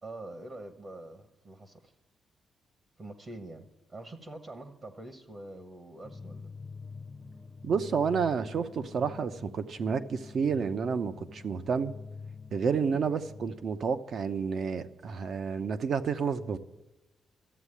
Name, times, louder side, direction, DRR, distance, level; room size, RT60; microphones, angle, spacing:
voice 1, 0.0-1.9 3.0-6.5, right 2 dB, 30° right, 8 dB, 1.1 m, -45 dB
sound 1, 6.0-13.6, left 4 dB, 15° left, 0.8 m, -46 dB
voice 2, 7.6-11.9 12.5-16.6, right 6 dB, 50° right, 10 dB, 0.8 m, -30 dB
13.5 x 8.3 x 9.9 m, 1.0 s
wide cardioid pair, 155°, 0 cm